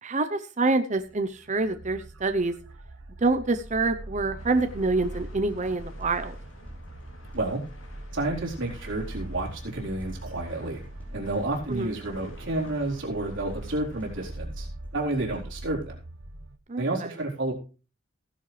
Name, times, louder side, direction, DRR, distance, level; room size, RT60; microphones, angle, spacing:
voice 1, 0.0-2.5 3.2-6.4 11.7-11.9 16.7-17.1, right 3 dB, 35° right, 8 dB, 0.8 m, -26 dB
sound 1, 1.0-16.6, right 1 dB, 90° right, 1.1 m, -42 dB
sound 2, 4.4-14.3, left 1 dB, 75° left, 3.0 m, -49 dB
sound 3, 5.0-15.7, equal, 10° left, 4.9 m, -50 dB
voice 2, 8.1-10.8 11.1-14.7 14.9-16.0 16.8-17.5, right 2 dB, 65° right, -2 dB, 4.1 m, -30 dB
16.0 x 11.0 x 3.3 m, 0.35 s
head